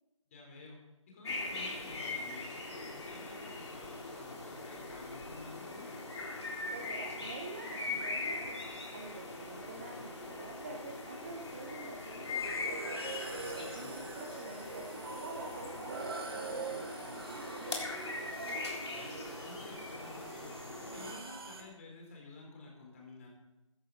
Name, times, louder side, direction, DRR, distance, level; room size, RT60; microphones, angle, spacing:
voice 1, 0.3-0.8 1.1-5.9 13.7-13.9 18.8-23.3, left 3 dB, 25° left, -1 dB, 4.6 m, -52 dB
sound 1, 1.2-21.1, left 3 dB, 55° left, 3.7 m, -41 dB
voice 2, 6.7-8.6 8.9-18.3, right 3 dB, 20° right, 2 dB, 1.0 m, -48 dB
sound 2, 12.3-21.6, right 4 dB, 45° right, 2.0 m, -44 dB
15.5 x 13.5 x 4.3 m, 0.98 s
figure-of-eight pair, 160°, 17 cm